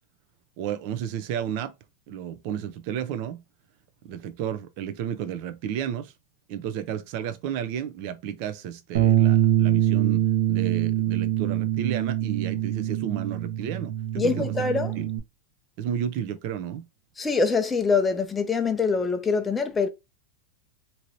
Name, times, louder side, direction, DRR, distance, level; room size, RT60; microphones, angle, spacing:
voice 1, 0.6-1.7 2.1-3.4 4.0-6.1 6.5-14.5 14.9-15.1 15.8-16.8, right 9 dB, 55° right, 0.5 m, -32 dB
Bass guitar, 8.9-15.2, right 12 dB, 80° right, 0.9 m, -24 dB
voice 2, 14.2-15.0 17.2-19.9, left 4 dB, 15° left, 0.6 m, -24 dB
3.0 x 2.7 x 2.7 m
supercardioid pair, 140°, 0 cm